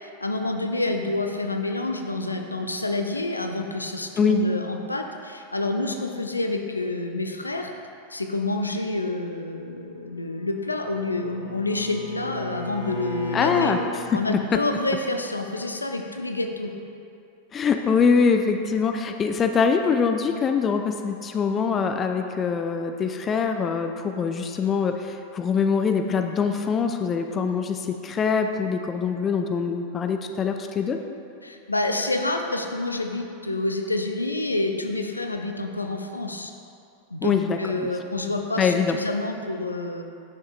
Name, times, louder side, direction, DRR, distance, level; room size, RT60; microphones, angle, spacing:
voice 1, 0.0-7.7 8.1-13.7 14.1-16.7 31.4-36.5 37.1-40.0, left 2 dB, 80° left, 4 dB, 0.5 m, -28 dB
Bowed string instrument, 10.5-13.9, left 2 dB, 80° right, 1.2 m, -35 dB
voice 2, 13.3-13.8 14.5-14.6 17.5-31.0 37.2-37.9 38.6-39.0, left 5 dB, 25° left, 6 dB, 0.4 m, -23 dB
9.9 x 6.1 x 2.4 m, 2.6 s
figure-of-eight pair, 90°, 0 cm